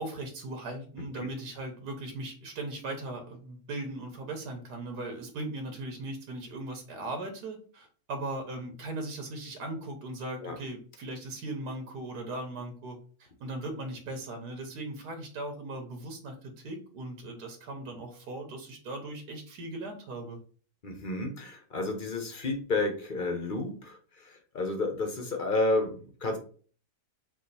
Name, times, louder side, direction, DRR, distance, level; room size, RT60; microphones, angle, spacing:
voice 1, 0.0-20.4, right 2 dB, 85° right, 4 dB, 1.6 m, -38 dB
voice 2, 20.8-26.4, left 2 dB, 45° left, 3 dB, 0.7 m, -31 dB
4.8 x 2.4 x 4.0 m, 0.42 s
omnidirectional pair, 1.7 m